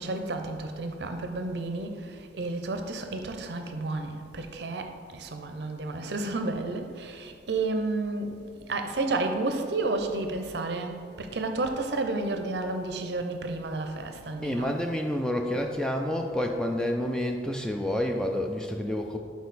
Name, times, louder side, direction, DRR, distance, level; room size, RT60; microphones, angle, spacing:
voice 1, 0.0-2.0 2.4-8.3 8.7-14.7, right 2 dB, 60° right, 6 dB, 0.6 m, -31 dB
voice 2, 14.4-19.2, left 1 dB, 5° left, 3 dB, 0.3 m, -29 dB
6.4 x 4.6 x 4.0 m, 2.2 s
head